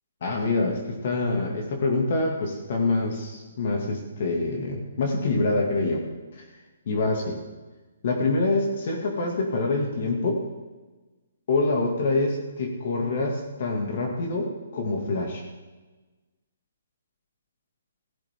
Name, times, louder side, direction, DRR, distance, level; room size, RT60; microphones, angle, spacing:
voice 1, 0.2-6.1 6.3-6.4 6.9-7.4 8.0-10.5 11.5-15.5, left 2 dB, 45° left, 1 dB, 2.4 m, -26 dB
15.5 x 15.0 x 3.8 m, 1.2 s
hypercardioid pair, 165°, 0 cm